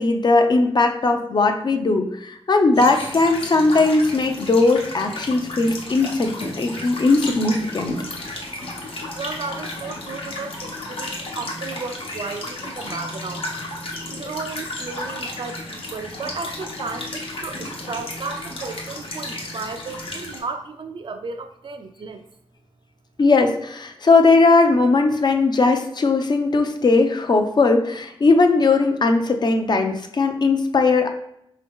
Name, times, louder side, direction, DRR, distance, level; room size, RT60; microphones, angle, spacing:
voice 1, 0.0-7.9 23.2-31.1, left 3 dB, 45° left, 5 dB, 0.5 m, -18 dB
sound 1, 2.7-20.4, left 2 dB, 65° left, 0.9 m, -33 dB
voice 2, 9.1-13.5 14.1-22.2, right 4 dB, 55° right, 7 dB, 0.4 m, -34 dB
4.5 x 2.7 x 3.5 m, 0.76 s
wide cardioid pair, 120°, 10 cm